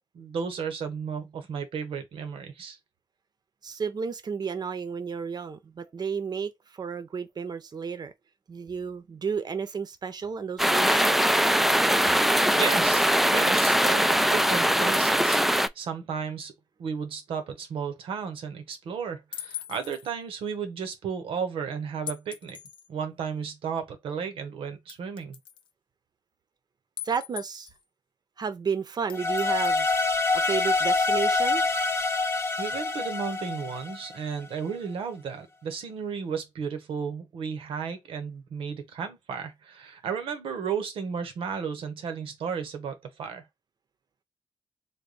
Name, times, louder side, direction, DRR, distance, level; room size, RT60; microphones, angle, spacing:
voice 1, 0.0-2.8 12.6-16.5 16.8-22.6 22.9-25.4 32.3-43.5, right 6 dB, 85° right, 0.9 m, -34 dB
voice 2, 3.6-8.1 8.5-11.5 27.0-27.7 28.4-29.9 30.3-31.6, right 6 dB, 50° right, 0.7 m, -32 dB
sound 1, 10.6-15.7, equal, 5° right, 0.3 m, -22 dB
sound 2, 19.3-20.1 22.1-22.9 23.5-23.6 24.9-25.7 27.0-27.8 29.1-30.2, left 10 dB, 70° left, 0.6 m, -40 dB
sound 3, 29.1-34.3, left 3 dB, 30° left, 0.7 m, -26 dB
3.5 x 2.2 x 3.9 m
cardioid pair, 70°, 9 cm